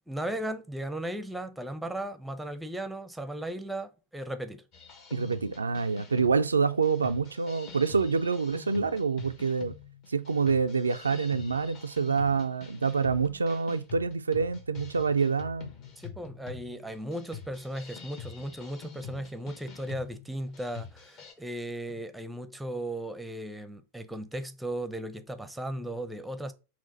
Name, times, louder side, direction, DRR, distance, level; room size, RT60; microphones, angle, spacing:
voice 1, 0.1-4.6 16.0-26.5, right 1 dB, 5° right, 0.6 m, -36 dB
sound 1, 4.7-21.3, left 7 dB, 40° left, 0.9 m, -46 dB
voice 2, 5.1-9.7 10.1-15.7, right 5 dB, 75° right, 0.3 m, -27 dB
5.7 x 2.4 x 3.8 m
figure-of-eight pair, 90°, 0 cm